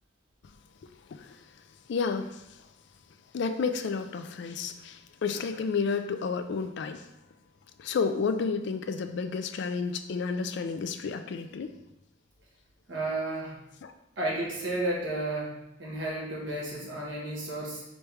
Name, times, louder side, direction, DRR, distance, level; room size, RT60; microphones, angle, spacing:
voice 1, 0.8-1.6 1.9-2.7 3.3-7.1 7.8-11.7 13.8-13.9, left 5 dB, 65° left, 8 dB, 0.4 m, -31 dB
voice 2, 12.9-13.6 14.2-17.8, right 2 dB, 80° right, -3 dB, 1.3 m, -32 dB
3.2 x 3.2 x 4.7 m, 0.90 s
head